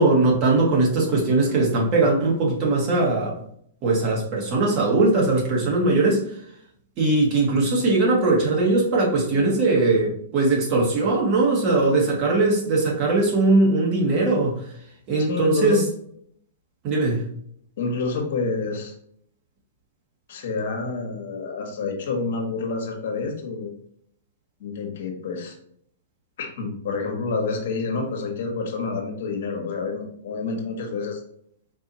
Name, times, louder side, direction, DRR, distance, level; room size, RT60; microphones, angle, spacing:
voice 1, 0.0-3.3 3.8-6.2 7.0-14.6 15.1-15.8 16.8-17.3, right 2 dB, 40° right, -3 dB, 1.6 m, -20 dB
voice 2, 15.3-15.9 17.8-18.9 20.3-23.7 24.6-25.5 26.4-31.2, left 4 dB, 65° left, 2 dB, 1.0 m, -28 dB
4.6 x 2.8 x 2.8 m, 0.66 s
hypercardioid pair, 115°, 0 cm